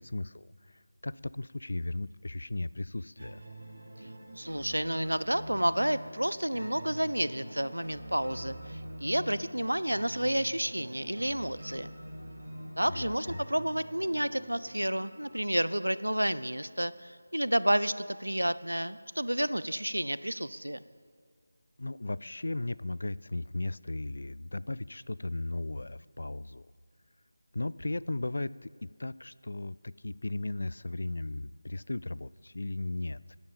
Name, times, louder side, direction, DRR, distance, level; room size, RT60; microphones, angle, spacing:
voice 1, 0.0-3.4 12.9-13.4 21.8-26.7 27.5-33.4, left 2 dB, 65° left, 19 dB, 0.3 m, -36 dB
sound 1, 3.2-16.1, right 1 dB, 65° right, 3.1 m, -46 dB
voice 2, 4.3-11.9 12.8-20.8, right 1 dB, 90° right, 16 dB, 0.5 m, -30 dB
12.0 x 10.5 x 7.5 m, 2.1 s
figure-of-eight pair, 165°, 0 cm